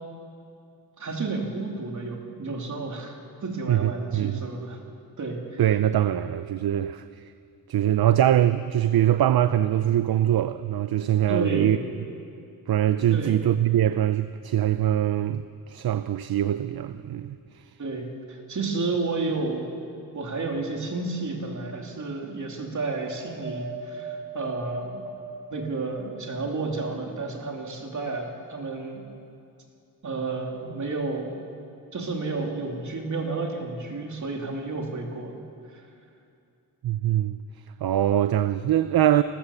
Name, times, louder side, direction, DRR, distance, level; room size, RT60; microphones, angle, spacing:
voice 1, 1.0-3.1 3.4-4.8 5.2-5.6 6.0-6.1 11.3-11.8 13.1-13.4 17.8-19.6 20.1-25.1 25.5-29.0 30.0-31.3 31.9-35.4, right 3 dB, 50° right, 2.9 m, -31 dB
voice 2, 3.7-4.4 5.6-7.0 7.7-11.8 12.7-17.4 36.8-37.4 37.8-39.2, right 11 dB, 70° right, 0.6 m, -23 dB
Wind, 23.0-26.5 27.1-28.1 28.9-29.0, right 2 dB, 30° right, 2.4 m, -40 dB
27.0 x 14.5 x 7.2 m
wide cardioid pair, 180°, 38 cm